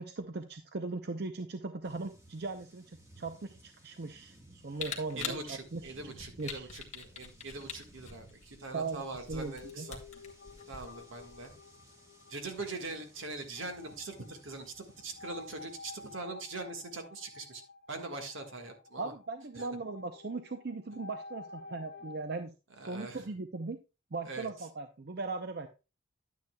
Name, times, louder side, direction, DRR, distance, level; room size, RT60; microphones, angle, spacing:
voice 1, 0.0-6.7 8.7-9.9 19.0-22.5 22.8-23.8 24.1-25.7, right 3 dB, 50° right, 8 dB, 0.6 m, -39 dB
sound 1, 1.8-16.1, right 1 dB, 15° right, 1.4 m, -59 dB
Camera, 4.8-11.5, left 6 dB, 35° left, 1.4 m, -44 dB
voice 2, 5.1-10.0 10.7-11.5 12.3-17.6 17.9-19.1 19.5-19.7 22.8-23.2 24.2-24.5, right 3 dB, 75° right, 5 dB, 1.6 m, -42 dB
sound 2, 9.0-22.2, left 3 dB, 50° left, 0.5 m, -51 dB
10.5 x 9.5 x 2.3 m, 0.29 s
head